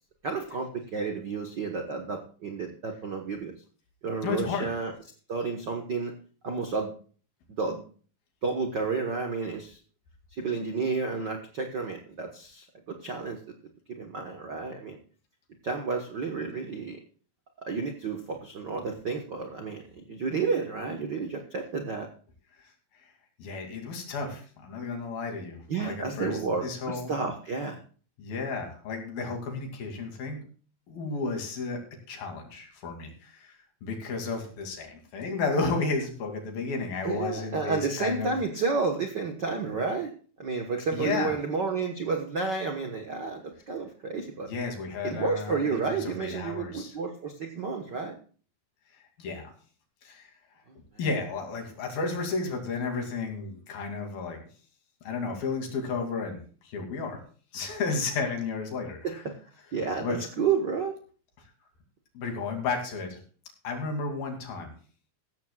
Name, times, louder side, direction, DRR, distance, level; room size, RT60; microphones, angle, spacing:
voice 1, 0.2-3.5 4.0-4.9 5.3-6.1 6.4-6.9 7.6-7.8 8.4-9.8 10.3-13.4 14.0-15.0 15.6-17.0 17.6-22.1 25.7-27.8 37.0-40.1 40.4-44.5 45.0-48.2 50.7-50.8 59.0-59.1 59.7-61.0, right 4 dB, 60° right, 3 dB, 1.1 m, -31 dB
voice 2, 4.2-4.7 22.6-22.7 23.4-27.1 28.2-30.4 30.9-31.8 32.1-33.6 33.8-38.3 40.9-41.3 44.5-47.0 49.2-49.5 50.0-50.3 51.0-54.4 55.0-56.4 56.6-57.2 57.5-59.2 60.0-60.2 62.1-63.2 63.6-64.7, left 4 dB, 85° left, 3 dB, 4.5 m, -32 dB
15.5 x 14.0 x 2.4 m, 0.40 s
omnidirectional pair, 4.1 m